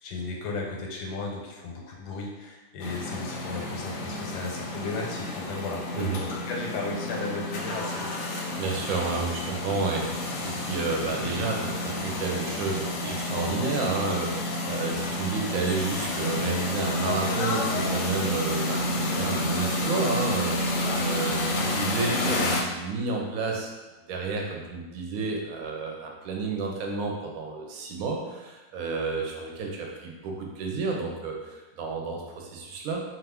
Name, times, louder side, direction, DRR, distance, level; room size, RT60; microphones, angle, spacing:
voice 1, 0.0-8.1, left 3 dB, 85° left, -1 dB, 1.2 m, -35 dB
sound 1, 2.8-22.6, left 1 dB, 70° left, 0.8 m, -30 dB
voice 2, 8.6-23.7 24.1-33.0, right 4 dB, 70° right, 0 dB, 1.0 m, -31 dB
2.7 x 2.4 x 3.4 m, 1.2 s
omnidirectional pair, 1.7 m